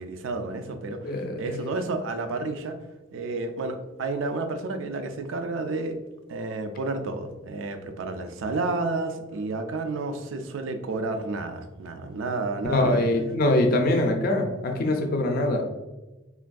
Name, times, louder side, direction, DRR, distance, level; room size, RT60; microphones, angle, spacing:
voice 1, 0.0-2.8 3.1-6.0 6.3-13.0, right 3 dB, 80° right, 7 dB, 0.4 m, -31 dB
voice 2, 1.0-1.6 12.6-15.6, left 1 dB, 50° left, 3 dB, 0.4 m, -23 dB
3.3 x 2.5 x 2.2 m, 1.1 s
head